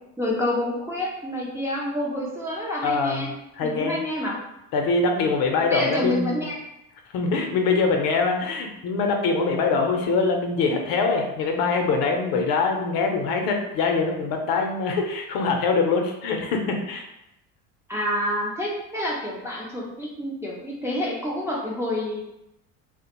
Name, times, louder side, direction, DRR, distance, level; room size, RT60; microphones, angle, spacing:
voice 1, 0.2-3.3 3.6-4.4 5.7-6.6 17.9-22.2, left 1 dB, 5° right, -5 dB, 0.4 m, -28 dB
voice 2, 2.8-4.0 4.7-6.5 7.1-17.1, left 4 dB, 60° left, 3 dB, 0.6 m, -23 dB
2.4 x 2.1 x 2.8 m, 0.89 s
supercardioid pair, 85°, 39 cm